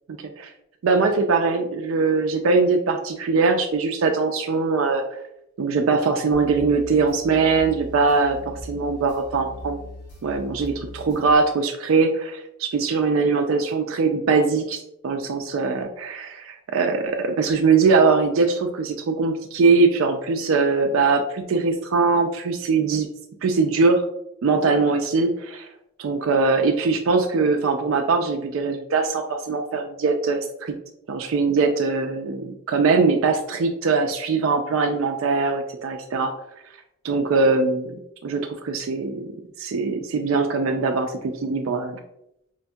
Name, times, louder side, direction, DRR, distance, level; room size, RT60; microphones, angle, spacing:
voice 1, 0.8-5.2 5.6-9.8 10.2-23.1 23.4-24.0 24.4-25.7 26.0-30.7 31.1-36.3 37.0-39.3 39.6-42.0, right 4 dB, 80° right, 4 dB, 0.4 m, -21 dB
sound 1, 6.3-11.3, equal, 55° left, 1.3 m, -40 dB
5.0 x 2.7 x 2.2 m, 0.79 s
head